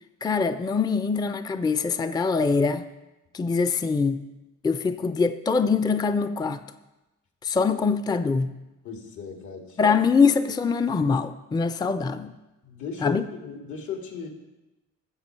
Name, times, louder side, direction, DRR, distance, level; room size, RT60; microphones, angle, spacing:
voice 1, 0.2-2.9 3.3-4.2 4.6-6.6 7.4-8.5 9.8-12.3 13.0-13.2, left 5 dB, 15° left, 11 dB, 0.4 m, -23 dB
voice 2, 8.8-9.8 12.6-14.3, left 6 dB, 75° left, 3 dB, 2.1 m, -36 dB
13.5 x 7.2 x 4.5 m, 1.0 s
cardioid pair, 90°, 30 cm